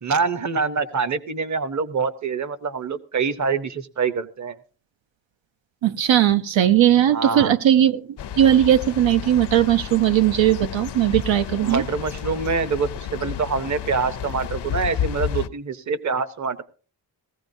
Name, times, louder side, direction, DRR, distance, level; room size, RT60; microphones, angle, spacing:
voice 1, 0.0-4.6 7.1-7.5 11.6-16.6, right 5 dB, 40° right, 13 dB, 0.8 m, -25 dB
voice 2, 5.8-8.0 8.4-11.8, right 11 dB, 85° right, 11 dB, 0.7 m, -18 dB
sound 1, 8.2-15.5, left 10 dB, 65° left, 0.6 m, -31 dB
19.0 x 15.0 x 2.6 m, 0.38 s
wide cardioid pair, 160°, 45 cm